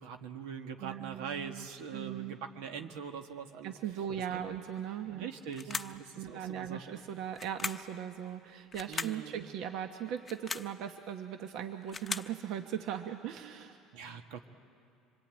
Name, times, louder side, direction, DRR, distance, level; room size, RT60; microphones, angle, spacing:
voice 1, 0.0-3.8 4.3-4.5 5.1-7.0 8.9-9.5 13.9-14.4, right 7 dB, 90° right, 5 dB, 1.6 m, -43 dB
voice 2, 0.8-2.3 3.6-5.3 5.7-13.8, right 9 dB, 65° right, 6 dB, 1.2 m, -39 dB
sound 1, 5.5-6.0 7.3-7.9 8.7-9.2 10.2-10.7 11.6-12.4, left 4 dB, 20° left, 0.7 m, -38 dB
26.0 x 22.0 x 9.1 m, 2.4 s
cardioid pair, 115°, 0 cm